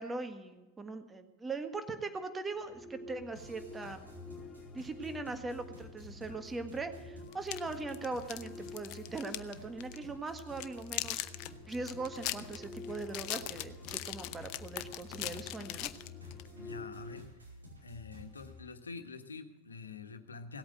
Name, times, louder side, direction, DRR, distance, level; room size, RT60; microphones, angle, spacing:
voice 1, 0.0-4.1 4.7-15.9, right 3 dB, 15° right, 8 dB, 1.5 m, -40 dB
sound 1, 2.5-17.2, left 3 dB, 15° left, 2.8 m, -50 dB
sound 2, 3.3-18.6, left 2 dB, 85° right, 5.1 m, -52 dB
sound 3, 7.3-9.5 9.8-10.0 10.4-16.5, left 16 dB, 50° left, 0.7 m, -40 dB
voice 2, 16.5-17.3 17.8-20.6, left 4 dB, 85° left, 8 dB, 1.3 m, -46 dB
17.5 x 8.6 x 7.8 m, 1.1 s
hypercardioid pair, 95°, 0 cm